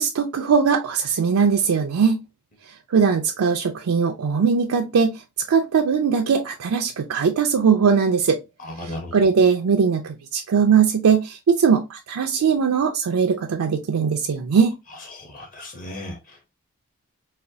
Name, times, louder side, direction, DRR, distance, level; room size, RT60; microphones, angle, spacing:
voice 1, 0.0-2.2 2.9-5.2 5.5-8.4 8.8-14.7, right 6 dB, 85° right, 0.4 m, -20 dB
voice 2, 8.6-9.1 15.1-16.5, left 1 dB, 40° left, 0.8 m, -36 dB
4.1 x 2.4 x 2.6 m
head